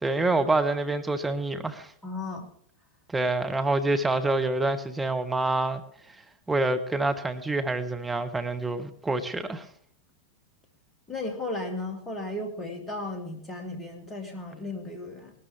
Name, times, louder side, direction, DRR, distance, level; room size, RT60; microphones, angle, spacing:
voice 1, 0.0-1.9 3.1-5.8 6.5-9.7, right 2 dB, 10° right, 6 dB, 1.0 m, -27 dB
voice 2, 2.0-2.5 11.1-15.3, left 2 dB, 15° left, 3 dB, 2.9 m, -35 dB
20.0 x 12.5 x 3.5 m, 0.62 s
figure-of-eight pair, 90°, 0 cm